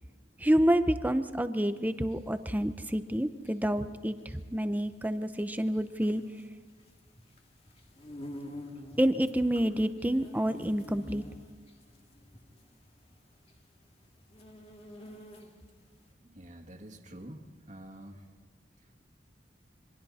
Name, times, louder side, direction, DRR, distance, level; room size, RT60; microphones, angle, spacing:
voice 1, 0.4-6.2 9.0-11.2, equal, 10° right, 10 dB, 0.7 m, -28 dB
sound 1, 1.6-15.8, left 1 dB, 35° left, 2.3 m, -48 dB
voice 2, 16.2-18.2, right 1 dB, 45° right, 3 dB, 2.2 m, -47 dB
27.0 x 23.5 x 4.3 m, 1.5 s
head